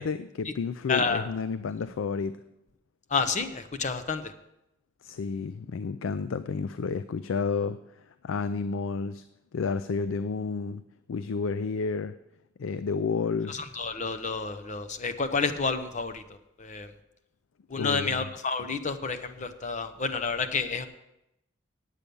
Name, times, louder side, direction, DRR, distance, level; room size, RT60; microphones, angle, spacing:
voice 1, 0.0-2.4 5.0-7.8 8.2-9.2 9.5-10.8 11.1-12.2 12.6-13.6 17.7-18.2, left 5 dB, 85° left, 12 dB, 0.4 m, -30 dB
voice 2, 0.9-1.3 3.1-4.3 13.5-16.2 16.6-16.9 17.7-20.9, left 4 dB, 40° left, 10 dB, 0.8 m, -30 dB
9.2 x 8.3 x 6.9 m, 0.86 s
head